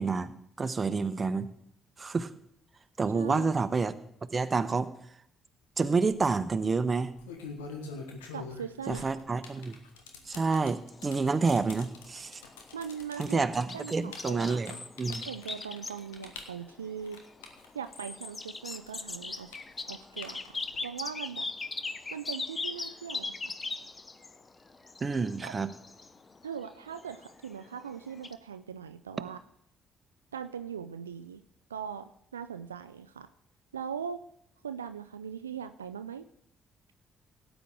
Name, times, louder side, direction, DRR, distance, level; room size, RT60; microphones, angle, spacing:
voice 1, 0.0-1.5 2.0-2.3 3.0-3.9 4.3-4.9 5.8-7.1 8.9-9.8 10.3-12.4 13.2-14.7 15.0-15.2 25.0-25.7, right 4 dB, 35° right, 12 dB, 1.0 m, -28 dB
voice 2, 3.1-3.5 8.3-9.2 12.7-13.4 13.7-14.8 15.2-17.2 17.7-19.6 19.9-21.5 21.8-23.5 25.4-25.5 26.4-29.4 30.3-31.4 31.7-33.3 33.7-34.2 34.6-36.3, right 7 dB, 90° right, 10 dB, 0.3 m, -40 dB
sound 1, 6.2-6.3 7.0-18.4 18.7-20.8, left 4 dB, 80° left, 1.4 m, -45 dB
sound 2, 10.9-28.3, left 3 dB, 30° left, 0.9 m, -41 dB
17.0 x 9.1 x 3.7 m, 0.72 s
figure-of-eight pair, 45°, 0 cm